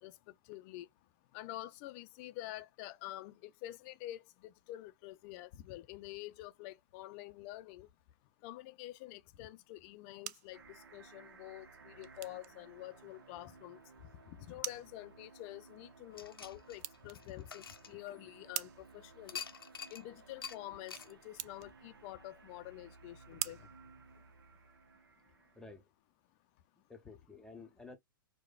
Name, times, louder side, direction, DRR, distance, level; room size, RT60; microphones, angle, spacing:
voice 1, 0.0-0.9 1.3-7.9 8.4-13.8 14.3-19.4 19.9-23.7, left 15 dB, 35° left, 0.4 m, -48 dB
sound 1, 9.8-24.7, right 13 dB, 45° right, 0.4 m, -49 dB
sound 2, 10.5-25.6, right 4 dB, 75° right, 0.8 m, -59 dB
sound 3, 16.2-18.6 19.3-20.0 20.4-20.6 20.9-21.1, left 6 dB, 85° left, 0.5 m, -46 dB
voice 2, 25.5-25.9 26.8-28.0, left 3 dB, 5° left, 0.7 m, -52 dB
4.7 x 2.2 x 2.3 m
hypercardioid pair, 115°, 12 cm